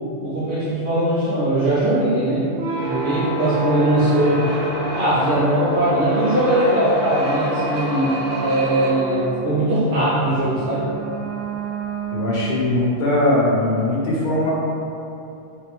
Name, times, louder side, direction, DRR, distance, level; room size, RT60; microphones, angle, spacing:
voice 1, 0.2-4.5 4.9-10.9, right 1 dB, 80° right, -12 dB, 1.1 m, -20 dB
sound 1, 2.5-12.8, right 1 dB, 55° right, 1.2 m, -27 dB
voice 2, 12.1-14.5, left 1 dB, 55° left, -5 dB, 0.6 m, -20 dB
4.2 x 2.1 x 2.9 m, 2.7 s
omnidirectional pair, 1.2 m